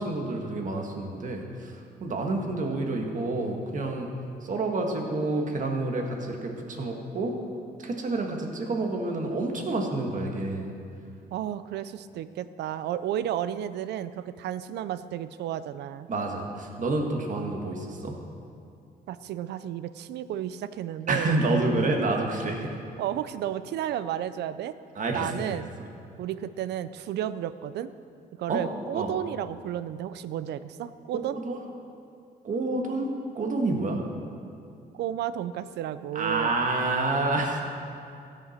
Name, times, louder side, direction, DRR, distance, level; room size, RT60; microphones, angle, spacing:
voice 1, 0.0-4.1 4.4-7.4 7.8-10.7 16.1-18.1 21.1-22.8 24.9-25.6 28.5-28.6 28.9-29.1 31.1-31.6 32.4-34.0 36.1-37.6, right 2 dB, 50° right, 2 dB, 1.6 m, -28 dB
voice 2, 11.3-16.1 19.1-21.3 23.0-24.8 25.1-25.7 26.2-27.9 28.4-31.4 34.9-36.5, right 11 dB, 85° right, 14 dB, 0.4 m, -32 dB
16.0 x 6.8 x 4.4 m, 2.5 s
cardioid pair, 95°, 17 cm